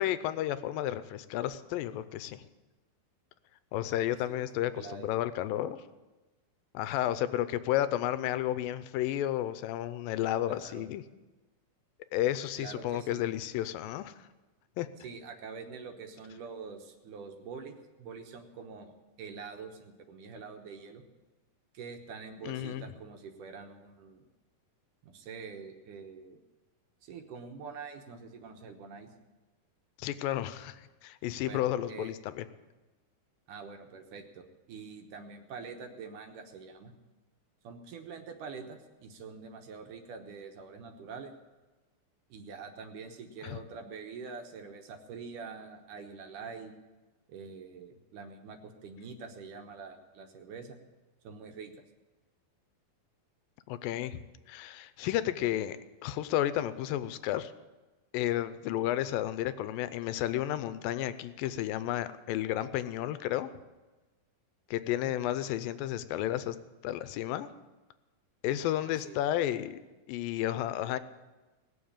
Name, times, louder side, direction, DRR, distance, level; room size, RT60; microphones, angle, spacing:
voice 1, 0.0-2.5 3.7-5.8 6.7-11.0 12.1-14.1 14.8-14.9 22.4-22.9 30.0-32.5 43.4-43.6 53.7-54.2 54.5-55.8 56.0-57.5 58.1-63.5 64.7-66.6 66.8-67.5 68.4-69.8 70.1-71.0, left 13 dB, 80° left, 13 dB, 2.3 m, -32 dB
voice 2, 4.0-4.5 4.8-5.1 10.5-10.9 12.6-13.3 15.0-21.0 21.7-24.2 25.0-26.4 27.0-29.1 31.5-32.1 33.5-36.9 37.6-41.3 42.3-46.7 47.3-50.8 51.2-51.7 65.0-65.1 68.4-69.2, right 5 dB, 70° right, 5 dB, 2.4 m, -45 dB
19.0 x 7.3 x 8.8 m, 1.2 s
omnidirectional pair, 4.3 m